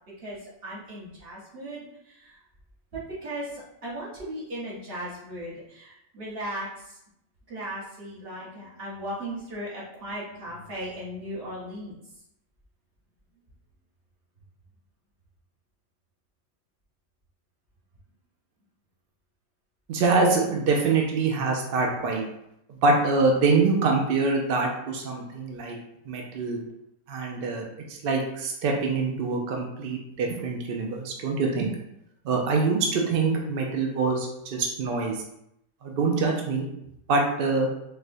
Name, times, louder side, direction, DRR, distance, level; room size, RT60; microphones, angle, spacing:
voice 1, 0.2-2.4 2.9-7.0 7.5-12.0, right 1 dB, 45° right, -6 dB, 1.1 m, -37 dB
voice 2, 19.9-22.3 22.7-25.8 26.1-26.6 27.1-31.7 32.2-35.2 35.8-36.7 37.1-37.7, right 3 dB, 75° right, 0 dB, 0.5 m, -25 dB
4.2 x 2.1 x 2.5 m, 0.80 s
omnidirectional pair, 1.5 m